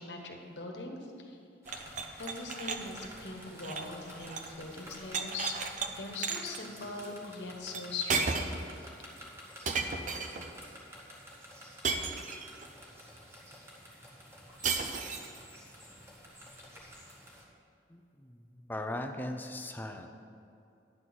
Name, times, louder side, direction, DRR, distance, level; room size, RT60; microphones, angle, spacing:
voice 1, 0.0-1.4 2.1-5.6 5.9-8.5, left 3 dB, 80° left, 2 dB, 1.2 m, -41 dB
sound 1, 1.6-17.4, equal, 15° right, 1.6 m, -51 dB
sound 2, 1.7-4.6 4.8-5.9 6.2-6.6 7.7-7.8 8.1-8.7 9.7-10.5 11.8-12.7 14.6-15.4, right 4 dB, 45° right, 0.6 m, -34 dB
voice 2, 17.9-20.1, left 1 dB, 10° left, 5 dB, 0.5 m, -39 dB
10.5 x 4.2 x 7.7 m, 2.7 s
head